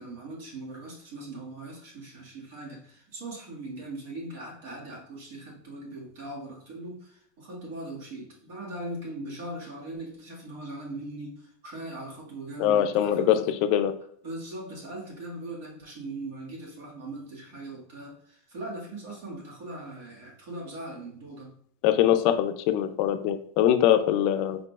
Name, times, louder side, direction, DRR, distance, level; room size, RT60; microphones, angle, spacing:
voice 1, 0.0-13.4 14.2-21.5, right 2 dB, 70° right, -2 dB, 1.8 m, -40 dB
voice 2, 12.6-13.9 21.8-24.6, left 10 dB, 50° left, 10 dB, 0.4 m, -23 dB
4.8 x 3.8 x 2.4 m, 0.63 s
supercardioid pair, 145°, 0 cm